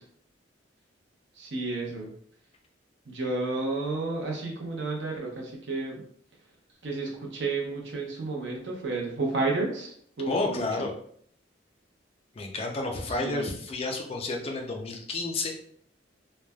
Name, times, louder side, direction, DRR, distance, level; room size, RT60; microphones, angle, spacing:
voice 1, 1.3-2.1 3.0-6.0 6.8-10.9 13.1-13.5, right 3 dB, 70° right, -1 dB, 0.7 m, -31 dB
voice 2, 10.3-10.9 12.4-15.5, left 2 dB, 30° left, 2 dB, 0.4 m, -30 dB
3.1 x 2.2 x 2.2 m, 0.63 s
head